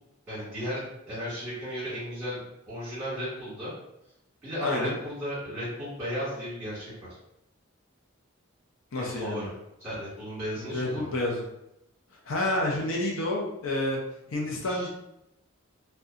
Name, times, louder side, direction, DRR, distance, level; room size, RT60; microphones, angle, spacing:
voice 1, 0.3-2.4 2.7-3.7 4.4-7.1 8.9-9.5 9.8-11.1 14.6-14.9, equal, 5° right, -11 dB, 1.4 m, -35 dB
voice 2, 4.6-5.0 8.9-9.5 10.6-11.4 12.3-14.0 14.3-14.9, left 1 dB, 75° left, -1 dB, 0.5 m, -29 dB
2.7 x 2.2 x 2.4 m, 0.85 s
head